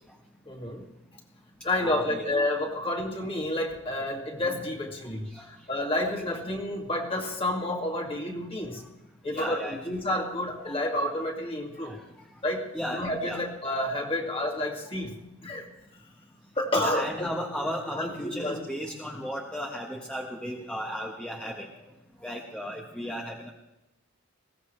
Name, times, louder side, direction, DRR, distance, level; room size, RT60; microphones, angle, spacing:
voice 1, 0.5-0.9 1.6-8.8 9.2-12.0 12.4-15.7 16.6-17.5 17.9-18.7, left 1 dB, 30° left, 0 dB, 2.2 m, -30 dB
voice 2, 1.8-2.3 5.2-5.5 9.3-9.8 10.6-11.3 11.7-12.1 12.7-13.8 14.2-14.3 16.7-21.9 22.2-23.5, equal, 5° left, -1 dB, 1.2 m, -36 dB
21.0 x 16.5 x 3.3 m, 0.96 s
head